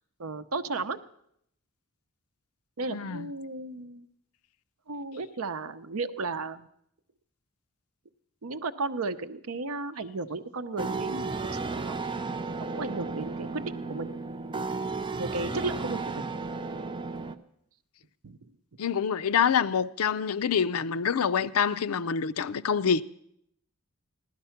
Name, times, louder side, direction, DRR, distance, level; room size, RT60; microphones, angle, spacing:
voice 1, 0.2-1.0 2.8-4.1 4.9-6.7 8.4-12.0 12.7-14.1 15.2-16.2 18.2-18.5, right 3 dB, 75° right, 0.7 m, -34 dB
voice 2, 2.9-3.3 18.8-23.0, left 7 dB, 80° left, 0.5 m, -26 dB
sound 1, 10.8-17.3, right 3 dB, 20° right, 0.6 m, -34 dB
16.0 x 12.0 x 5.8 m
head